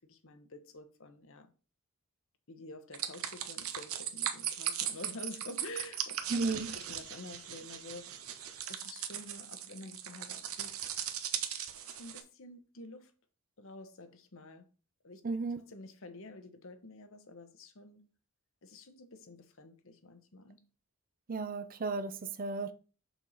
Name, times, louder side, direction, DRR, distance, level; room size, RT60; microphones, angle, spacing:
voice 1, 0.0-1.5 2.5-6.4 6.7-8.2 8.6-10.7 11.8-13.1 13.6-14.7 15.0-15.2 15.7-18.1 18.6-20.6, left 2 dB, 65° left, 1.0 m, -49 dB
sound 1, 2.9-12.2, right 10 dB, 70° right, 0.9 m, -38 dB
voice 2, 6.3-6.7 15.2-15.6 21.3-22.7, right 3 dB, 40° right, 0.6 m, -34 dB
6.6 x 6.1 x 4.1 m
head